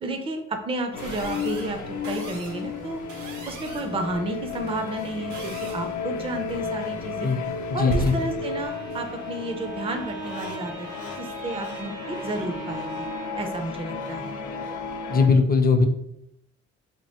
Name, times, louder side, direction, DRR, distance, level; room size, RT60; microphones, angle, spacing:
voice 1, 0.0-3.0 3.5-7.3 7.7-10.9 11.2-13.1 13.3-14.3, right 2 dB, 20° right, 5 dB, 0.5 m, -32 dB
sound 1, 0.9-15.3, left 5 dB, 75° left, 0.6 m, -34 dB
sound 2, 1.0-10.1, right 2 dB, 80° right, 1.0 m, -38 dB
voice 2, 7.7-8.1 15.1-15.9, left 4 dB, 30° left, 7 dB, 0.5 m, -19 dB
Bowed string instrument, 8.3-13.6, right 4 dB, 55° right, 0.8 m, -40 dB
2.9 x 2.6 x 4.2 m, 0.78 s
cardioid pair, 90°, 30 cm